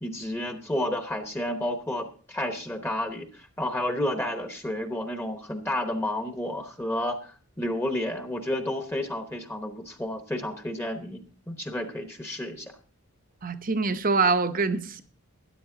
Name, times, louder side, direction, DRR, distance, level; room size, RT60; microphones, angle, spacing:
voice 1, 0.0-12.7, left 1 dB, 10° left, 0.9 m, -31 dB
voice 2, 13.4-15.0, right 4 dB, 40° right, 0.7 m, -24 dB
13.0 x 10.0 x 3.8 m
head